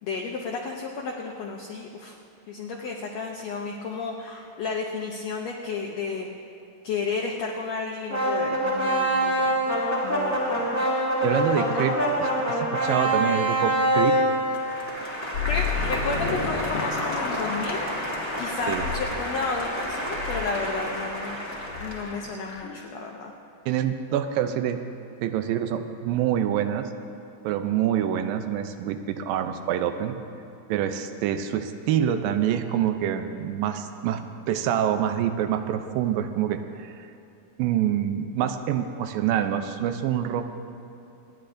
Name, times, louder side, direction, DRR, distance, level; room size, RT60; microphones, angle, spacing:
voice 1, 0.0-2.2 2.5-6.4 6.8-9.6 10.0-10.8 15.0-17.9 18.4-21.4 21.8-23.3, left 4 dB, 90° left, 0 dB, 1.4 m, -32 dB
sound 1, 8.1-22.3, right 1 dB, 20° right, 0.4 m, -26 dB
voice 2, 11.2-14.2 18.7-18.8 23.7-24.8 25.2-26.9 27.4-30.2 30.7-34.2 34.5-36.9 37.6-40.5, right 10 dB, 85° right, 8 dB, 2.3 m, -26 dB
sound 2, 15.3-22.9, left 5 dB, 70° left, 1.9 m, -33 dB
27.0 x 9.9 x 2.6 m, 2.7 s
omnidirectional pair, 4.1 m